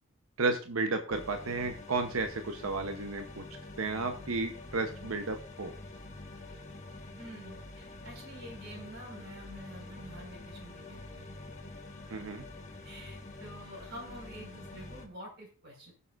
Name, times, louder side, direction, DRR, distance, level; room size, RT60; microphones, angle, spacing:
voice 1, 0.4-3.5 3.8-5.7 12.1-12.4, right 3 dB, 80° right, 6 dB, 0.9 m, -33 dB
sound 1, 1.1-15.1, left 2 dB, 35° left, 1.4 m, -46 dB
voice 2, 7.2-11.3 12.8-15.9, right 1 dB, 50° right, -2 dB, 5.1 m, -48 dB
20.0 x 6.9 x 2.5 m, 0.39 s
head